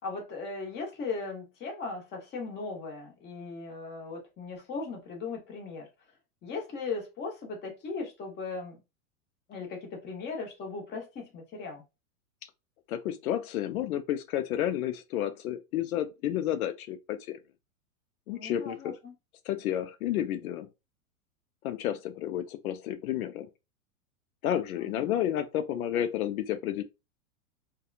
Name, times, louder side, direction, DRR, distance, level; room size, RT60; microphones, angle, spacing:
voice 1, 0.0-5.9 6.4-8.8 9.5-11.8 18.3-19.1 24.8-25.2, left 4 dB, 25° left, 1.0 m, -38 dB
voice 2, 12.9-17.4 18.3-18.9 19.5-20.7 21.6-23.5 24.4-26.8, left 11 dB, 90° left, 0.5 m, -31 dB
2.7 x 2.3 x 2.4 m
supercardioid pair, 130°, 42 cm